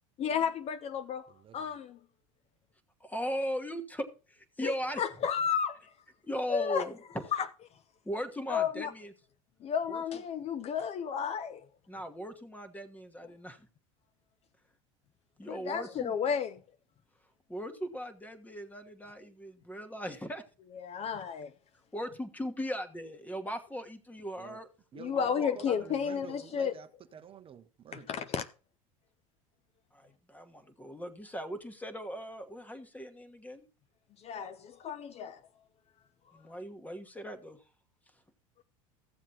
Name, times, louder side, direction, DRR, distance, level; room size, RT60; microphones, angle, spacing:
voice 1, 0.2-2.0 4.6-5.9 6.5-6.9 7.3-7.5 8.5-8.9 9.6-11.7 15.5-16.6 20.8-21.5 25.0-26.7 27.9-28.5 34.2-35.4, left 7 dB, 40° left, 0.5 m, -32 dB
voice 2, 1.3-1.7 24.4-24.6 24.9-28.1, right 8 dB, 30° right, 0.6 m, -49 dB
voice 3, 3.0-5.0 6.2-7.0 8.0-9.1 9.9-10.0 11.9-13.7 15.4-16.1 17.5-20.4 21.9-24.7 25.1-25.9 29.9-33.6 36.3-37.6, equal, 10° left, 1.3 m, -39 dB
15.0 x 7.4 x 2.9 m
hypercardioid pair, 95°, 17 cm